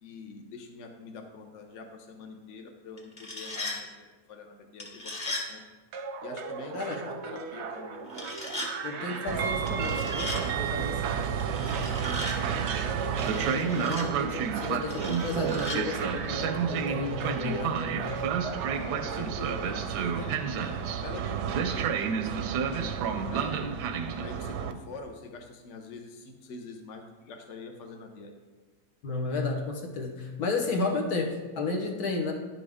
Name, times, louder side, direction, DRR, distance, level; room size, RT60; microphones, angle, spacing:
voice 1, 0.0-5.6 6.2-8.0 13.8-14.3 18.8-23.7 24.2-28.3, left 3 dB, 55° left, 3 dB, 1.0 m, -45 dB
sound 1, 3.0-3.8 4.8-5.5 8.1-8.7 9.7-10.4 11.4-12.4 13.2-14.1 14.9-15.8, left 2 dB, 25° left, 1.2 m, -37 dB
sound 2, 5.9-19.8, right 4 dB, 60° right, 0.8 m, -38 dB
voice 2, 8.8-12.7 13.1-18.2 29.0-32.3, left 3 dB, 70° left, 2 dB, 1.6 m, -33 dB
Train, 9.3-24.7, right 7 dB, 90° right, 1.2 m, -30 dB
10.5 x 6.1 x 3.5 m, 1.3 s
omnidirectional pair, 1.7 m